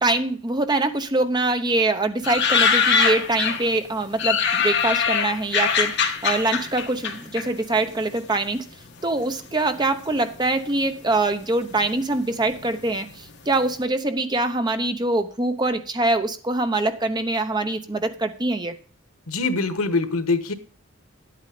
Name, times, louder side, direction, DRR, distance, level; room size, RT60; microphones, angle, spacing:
voice 1, 0.0-5.9 6.2-8.7 9.0-13.1 13.5-18.8, right 2 dB, 20° right, 8 dB, 0.8 m, -24 dB
sound 1, 2.2-3.8 4.2-8.1 8.3-9.2 9.8-10.4 10.7-10.8 11.0-13.3 13.6-13.7, left 6 dB, 55° left, 1.5 m, -23 dB
voice 2, 19.3-20.5, left 3 dB, 90° left, 10 dB, 1.2 m, -23 dB
10.5 x 8.6 x 5.0 m, 0.42 s
head